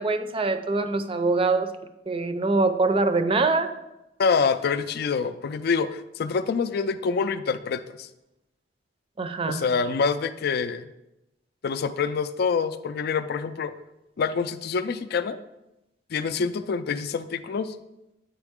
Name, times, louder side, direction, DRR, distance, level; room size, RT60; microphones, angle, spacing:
voice 1, 0.0-1.7 2.1-3.7 9.2-9.6, right 3 dB, 30° right, 9 dB, 0.5 m, -24 dB
voice 2, 4.2-8.1 9.5-10.9 11.6-13.7 14.2-15.4 16.1-17.7, left 5 dB, 60° left, 12 dB, 0.4 m, -26 dB
8.9 x 4.8 x 3.6 m, 0.91 s
head